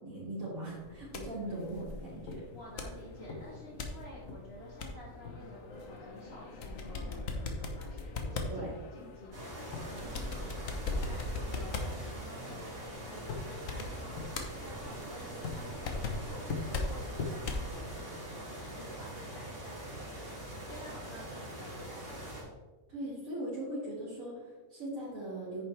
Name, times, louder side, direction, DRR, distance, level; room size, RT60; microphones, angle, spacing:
voice 1, 0.0-2.4 8.5-8.7 22.9-25.6, right 1 dB, 75° right, -11 dB, 3.0 m, -39 dB
sound 1, 0.7-17.7, left 3 dB, 75° left, 1.4 m, -40 dB
voice 2, 2.5-22.5, left 1 dB, 50° left, -3 dB, 1.5 m, -51 dB
sound 2, 9.3-22.4, right 1 dB, 45° right, 3.0 m, -43 dB
9.3 x 6.8 x 3.3 m, 1.3 s
omnidirectional pair, 1.4 m